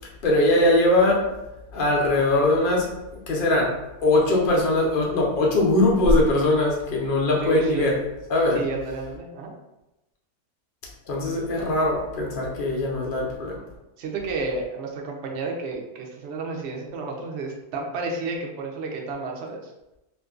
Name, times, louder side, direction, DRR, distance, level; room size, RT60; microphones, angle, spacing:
voice 1, 0.2-1.3 1.7-2.9 3.3-3.8 4.0-8.0 8.3-8.6 11.1-13.6, left 1 dB, 75° left, -2 dB, 0.4 m, -21 dB
voice 2, 7.4-7.9 8.5-9.5 14.0-19.7, right 3 dB, 65° right, 0 dB, 0.6 m, -31 dB
2.6 x 2.5 x 3.6 m, 0.95 s
omnidirectional pair, 1.7 m